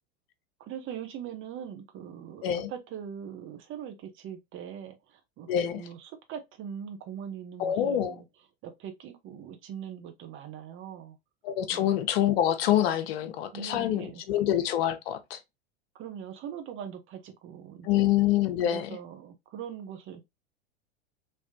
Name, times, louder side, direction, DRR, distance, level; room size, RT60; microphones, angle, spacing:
voice 1, 0.6-8.3 8.6-11.2 11.7-11.9 13.2-14.2 15.9-18.1 18.7-20.2, right 8 dB, 40° right, 1.0 m, -41 dB
voice 2, 5.5-5.9 7.6-8.2 11.4-15.4 17.8-18.9, left 11 dB, 65° left, 0.8 m, -26 dB
3.3 x 3.1 x 2.7 m
hypercardioid pair, 95°, 32 cm